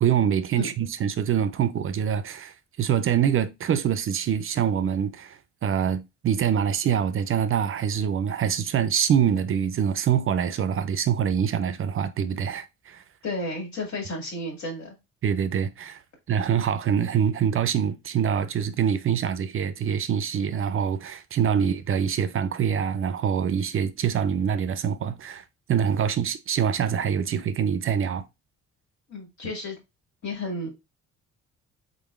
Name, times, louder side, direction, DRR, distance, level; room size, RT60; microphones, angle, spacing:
voice 1, 0.0-13.0 15.2-16.0 16.3-28.2, right 8 dB, 45° right, 0.4 m, -25 dB
voice 2, 13.2-15.0 21.4-21.7 29.1-29.8 30.2-30.7, left 2 dB, 70° left, 2.2 m, -32 dB
3.9 x 3.6 x 2.4 m
cardioid pair, 90°, 30 cm